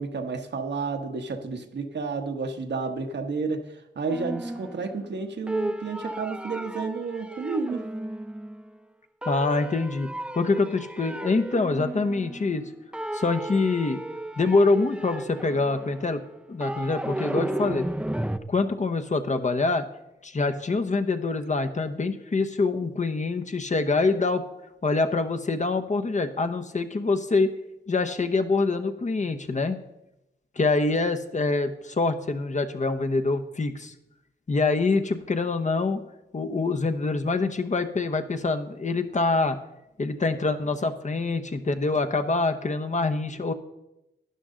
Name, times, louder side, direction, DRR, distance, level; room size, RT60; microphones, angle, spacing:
voice 1, 0.0-7.8, right 4 dB, 70° right, 5 dB, 1.2 m, -31 dB
sound 1, 4.1-5.2 5.5-8.8 9.2-12.7 12.9-18.4, right 1 dB, 5° right, 0.6 m, -34 dB
voice 2, 9.3-10.1 10.3-12.6 13.1-14.0 14.4-16.2 16.5-17.9 18.5-19.8 20.2-24.5 24.8-27.5 27.9-29.8 30.6-33.9 34.5-36.0 36.3-39.6 40.0-43.5, left 3 dB, 40° left, 7 dB, 1.0 m, -25 dB
12.0 x 9.9 x 3.8 m, 0.90 s
cardioid pair, 65°, 18 cm